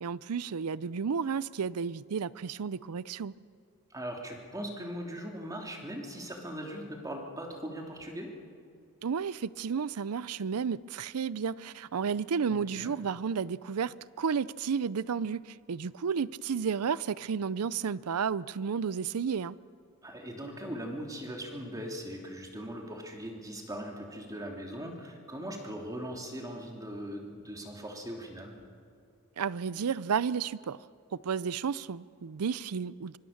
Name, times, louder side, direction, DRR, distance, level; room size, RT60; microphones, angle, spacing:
voice 1, 0.0-3.3 9.0-19.6 29.4-30.8 31.2-33.2, right 6 dB, 80° right, 0.5 m, -32 dB
voice 2, 3.9-8.4 12.5-12.9 20.0-28.5, equal, 15° right, 3.0 m, -40 dB
25.0 x 23.5 x 7.2 m
head